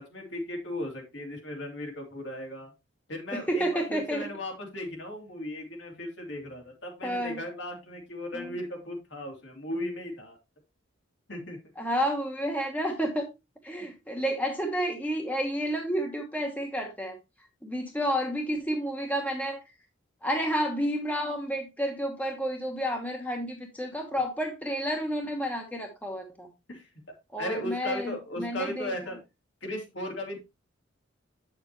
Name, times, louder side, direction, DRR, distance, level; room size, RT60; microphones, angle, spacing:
voice 1, 0.0-2.7 3.1-10.4 11.3-11.6 26.7-26.9 27.4-29.2 29.6-30.4, left 1 dB, 65° left, 1 dB, 2.9 m, -36 dB
voice 2, 3.3-4.3 7.0-7.4 8.3-8.6 11.8-13.3 13.6-17.2 17.6-19.6 20.2-26.5 27.3-28.9, equal, 10° left, 2 dB, 1.2 m, -30 dB
8.4 x 6.8 x 3.0 m, 0.24 s
head